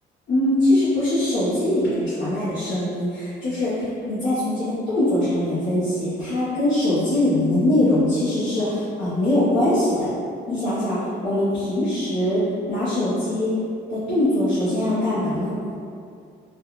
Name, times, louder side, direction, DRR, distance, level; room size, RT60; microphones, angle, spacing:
voice 1, 0.3-10.1 10.5-11.0 11.2-12.4 12.7-13.5 13.9-15.5, left 1 dB, 70° left, -12 dB, 0.8 m, -22 dB
2.3 x 2.3 x 2.9 m, 2.4 s
cardioid pair, 90°, 20 cm